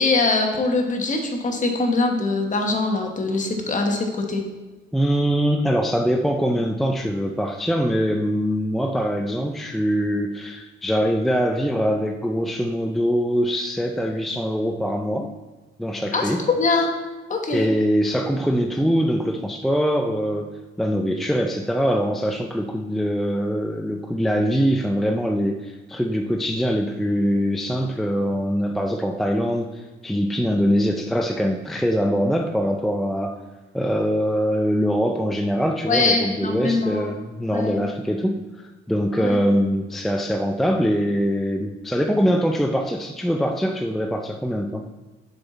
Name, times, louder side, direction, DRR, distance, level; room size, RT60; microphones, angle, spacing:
voice 1, 0.0-4.4 16.1-16.9 17.3-17.7 35.9-37.1 37.5-37.8 39.2-39.4, left 3 dB, 40° left, 2 dB, 1.3 m, -22 dB
voice 2, 4.9-15.3 15.8-16.4 17.5-33.4 33.7-44.9, equal, ahead, 4 dB, 0.4 m, -23 dB
6.8 x 5.7 x 4.0 m, 1.2 s
cardioid pair, 90°, 20 cm